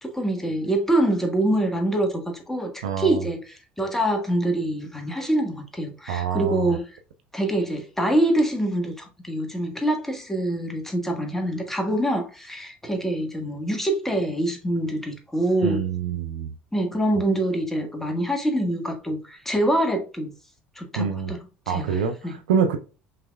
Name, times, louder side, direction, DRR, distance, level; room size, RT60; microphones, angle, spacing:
voice 1, 0.0-7.0 7.3-15.8 16.7-20.3 20.7-22.4, right 1 dB, 5° left, 1.3 m, -25 dB
voice 2, 2.8-3.2 6.1-6.7 15.6-16.5 21.0-21.3 21.7-22.8, right 7 dB, 75° right, 0.5 m, -25 dB
5.6 x 3.5 x 2.3 m
hypercardioid pair, 65°, 6 cm